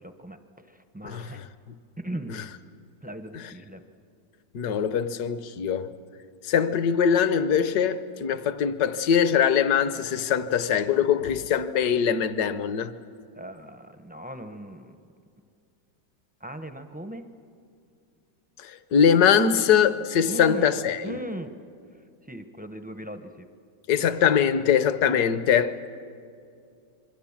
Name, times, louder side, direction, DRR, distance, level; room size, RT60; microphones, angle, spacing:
voice 1, 0.0-1.4 2.0-2.3 3.0-3.8 13.4-15.0 16.4-17.3 20.3-20.7 21.0-21.5 22.3-23.5, right 1 dB, 10° right, 0.4 m, -38 dB
voice 2, 1.0-1.4 2.3-2.4 3.3-3.5 4.5-5.9 6.4-12.9 18.6-21.2 23.9-25.7, left 7 dB, 65° left, 1.4 m, -22 dB
27.5 x 22.5 x 7.3 m
omnidirectional pair, 1.9 m